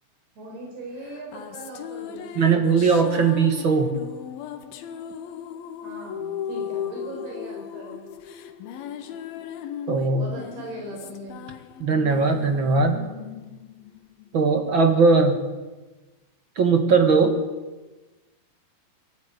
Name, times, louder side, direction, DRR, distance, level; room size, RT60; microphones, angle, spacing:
voice 1, 0.4-2.5 5.8-8.0 10.1-11.4, right 1 dB, 85° right, 0 dB, 6.4 m, -39 dB
sound 1, 1.0-14.7, left 9 dB, 75° left, 2.9 m, -37 dB
voice 2, 2.4-3.9 9.9-10.2 11.8-13.0 14.3-15.4 16.6-17.4, right 4 dB, 45° right, 5 dB, 1.8 m, -19 dB
22.5 x 13.0 x 9.5 m, 1.2 s
omnidirectional pair, 4.5 m